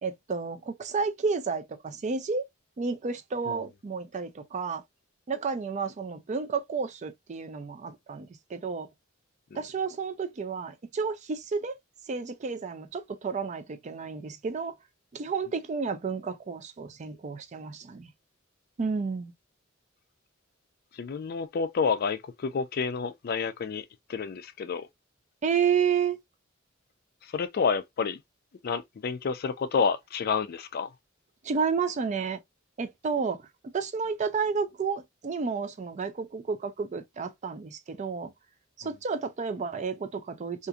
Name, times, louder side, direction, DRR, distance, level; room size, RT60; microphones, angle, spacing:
voice 1, 0.0-2.5 2.8-4.8 5.3-8.9 9.5-11.8 12.1-14.8 15.1-18.1 18.8-19.3 25.4-26.2 31.4-32.4 32.8-33.5 33.7-38.3 38.8-40.7, right 5 dB, 35° right, 0.4 m, -31 dB
voice 2, 20.9-23.8 24.1-24.9 27.2-28.2 28.6-30.9, left 5 dB, 50° left, 0.4 m, -29 dB
2.8 x 2.5 x 2.3 m
head